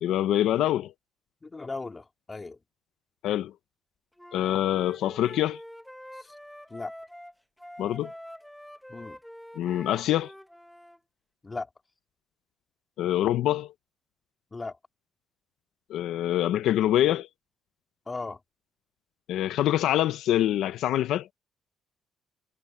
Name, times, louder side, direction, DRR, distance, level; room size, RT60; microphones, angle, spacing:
voice 1, 0.0-0.9 3.2-3.5 4.3-5.6 7.8-8.1 9.6-10.3 13.0-13.7 15.9-17.3 19.3-21.3, left 12 dB, 85° left, 0.8 m, -25 dB
voice 2, 1.4-2.6 6.2-6.3 6.7-6.9 8.9-9.2 11.4-11.7 14.5-14.8 18.1-18.4, left 3 dB, 25° left, 2.4 m, -37 dB
Wind instrument woodwind instrument, 4.2-11.0, equal, 5° left, 1.4 m, -46 dB
cardioid pair, 90°, 0 cm